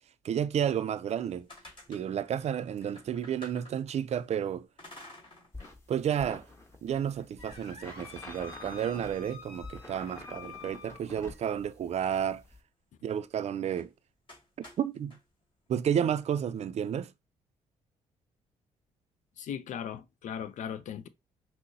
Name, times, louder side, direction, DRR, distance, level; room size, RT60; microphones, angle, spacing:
voice 1, 0.2-1.5 1.9-4.7 5.9-6.4 6.8-12.4 13.0-13.9 14.8-15.2 15.7-17.1, right 9 dB, 50° right, 0.4 m, -31 dB
sound 1, 1.1-4.2 4.8-5.8 6.2-6.3 6.9-11.5 13.7-13.9 14.3-15.2, left 3 dB, 40° left, 2.0 m, -50 dB
sound 2, 5.5-12.6, left 2 dB, 20° left, 1.3 m, -48 dB
voice 2, 19.4-21.1, left 8 dB, 65° left, 0.5 m, -38 dB
5.9 x 2.1 x 2.6 m
supercardioid pair, 55°, 14 cm